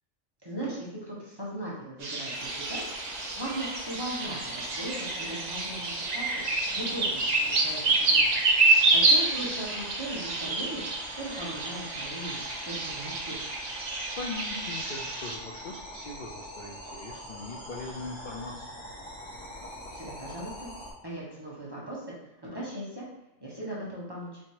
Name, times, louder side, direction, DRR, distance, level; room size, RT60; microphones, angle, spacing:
voice 1, 0.4-13.5 19.9-20.7 21.0-22.0 22.4-23.0 23.4-24.4, right 1 dB, 20° right, -7 dB, 1.0 m, -38 dB
sound 1, 2.0-15.4, right 2 dB, 55° right, 0.4 m, -28 dB
sound 2, 2.3-20.9, left 1 dB, 25° left, 0.9 m, -44 dB
voice 2, 14.2-18.7, left 3 dB, 90° left, -1 dB, 0.4 m, -40 dB
4.5 x 3.3 x 2.9 m, 0.88 s
omnidirectional pair, 1.4 m